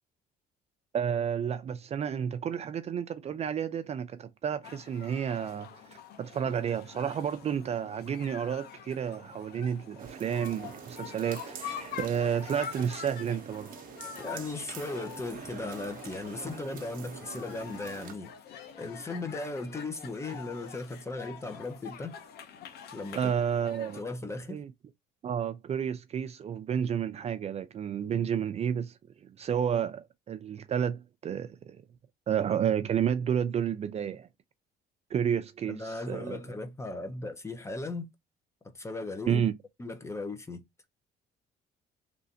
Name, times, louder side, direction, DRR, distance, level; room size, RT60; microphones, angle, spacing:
voice 1, 0.9-13.7 23.1-24.0 24.5-24.7 25.2-28.9 29.2-31.8 32.3-34.3 35.1-36.4 39.3-39.5, right 8 dB, 40° right, 0.4 m, -31 dB
sound 1, 4.6-24.0, left 8 dB, 70° left, 0.7 m, -46 dB
sound 2, 10.0-18.2, right 8 dB, 55° right, 0.8 m, -46 dB
voice 2, 14.2-18.3 18.7-22.2 22.9-23.3 23.9-24.6 28.1-28.2 35.7-38.1 38.7-39.5 39.8-40.6, left 2 dB, 15° left, 0.7 m, -37 dB
3.1 x 2.6 x 2.7 m
cardioid pair, 110°, 17 cm